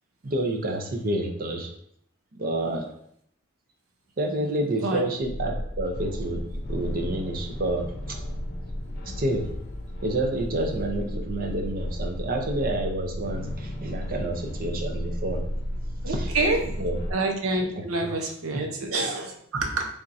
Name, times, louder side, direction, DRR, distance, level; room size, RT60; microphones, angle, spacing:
voice 1, 0.2-1.7 2.3-2.9 4.2-6.4 6.7-8.2 9.1-9.5 10.0-15.4 16.1-16.4 16.8-17.0 18.5-18.6, right 1 dB, 45° right, 3 dB, 0.6 m, -29 dB
sound 1, 5.2-17.1, equal, 50° left, 0.7 m, -33 dB
voice 2, 16.0-16.6 17.1-19.9, right 2 dB, 85° right, 3 dB, 0.8 m, -27 dB
4.4 x 3.6 x 2.6 m, 0.68 s
head